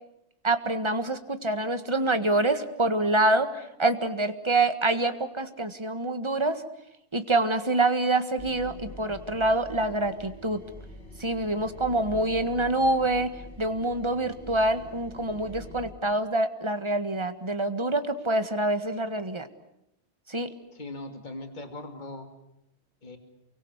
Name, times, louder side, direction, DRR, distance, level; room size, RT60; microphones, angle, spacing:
voice 1, 0.4-6.6 7.1-10.6 11.2-13.3 13.6-19.5 20.3-20.5, right 2 dB, 25° right, 9 dB, 1.7 m, -26 dB
sound 1, 8.4-15.8, left 1 dB, 85° left, 5.7 m, -45 dB
voice 2, 20.7-22.3 23.0-23.2, left 2 dB, 45° left, 6 dB, 2.7 m, -39 dB
29.0 x 23.5 x 8.1 m, 0.80 s
omnidirectional pair, 1.1 m